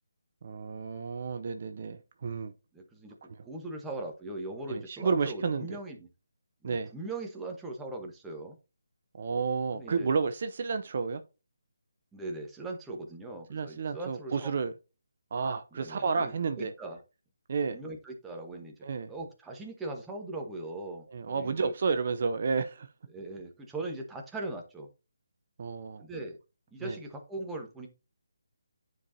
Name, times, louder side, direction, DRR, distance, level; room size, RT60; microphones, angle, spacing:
voice 1, 0.4-2.5 3.4-3.5 4.7-5.8 6.6-6.9 9.1-11.2 13.5-14.7 15.3-16.7 17.5-17.8 18.8-19.1 21.1-22.9 25.6-26.0 26.8-27.0, right 5 dB, 50° right, 0.5 m, -31 dB
voice 2, 2.7-3.2 3.4-6.1 6.6-8.6 9.7-10.1 12.1-14.5 15.7-17.0 17.7-18.7 19.1-21.7 23.1-24.9 26.0-26.4 26.7-27.9, right 2 dB, 5° right, 1.1 m, -40 dB
9.7 x 4.7 x 2.7 m
figure-of-eight pair, 155°, 0 cm